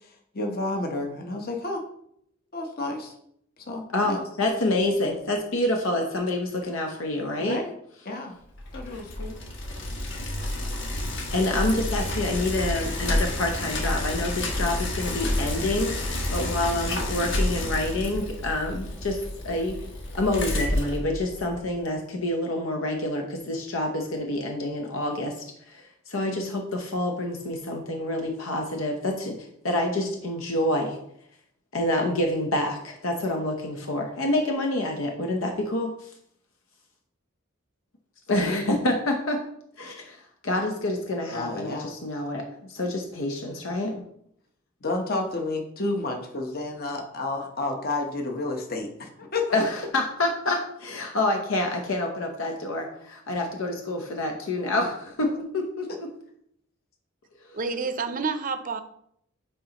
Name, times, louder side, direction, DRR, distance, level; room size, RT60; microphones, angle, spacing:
voice 1, 0.0-1.8 2.5-3.1 3.7-4.2 7.4-7.7 8.0-8.4 8.7-9.3 41.3-41.9 44.8-49.6, left 2 dB, 50° left, 2 dB, 0.9 m, -31 dB
voice 2, 3.9-7.6 11.3-19.8 20.1-25.4 25.7-31.0 31.7-36.1 38.3-39.4 39.8-44.0 49.5-56.1, left 1 dB, 85° left, 2 dB, 0.8 m, -27 dB
Bicycle, 8.5-21.7, left 1 dB, 65° left, 1.2 m, -30 dB
voice 3, 57.5-58.8, right 4 dB, 40° right, 9 dB, 0.5 m, -29 dB
9.9 x 3.8 x 2.9 m, 0.71 s
head